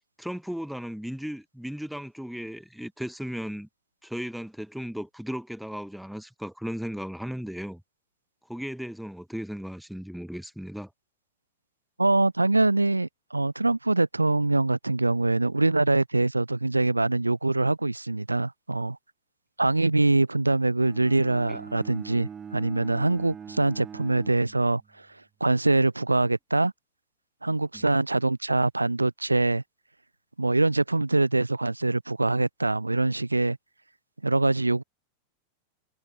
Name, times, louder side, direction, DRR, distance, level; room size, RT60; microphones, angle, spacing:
voice 1, 0.2-3.7 4.0-7.8 8.5-10.9 21.5-21.6 27.7-27.9, equal, ahead, 1.5 m, -36 dB
voice 2, 12.0-19.0 19.6-25.1 25.4-26.7 27.4-29.6 30.4-33.6 34.2-34.8, right 2 dB, 85° right, 0.5 m, -24 dB
Bowed string instrument, 20.8-25.0, right 7 dB, 20° right, 2.7 m, -42 dB
figure-of-eight pair, 90°, 0 cm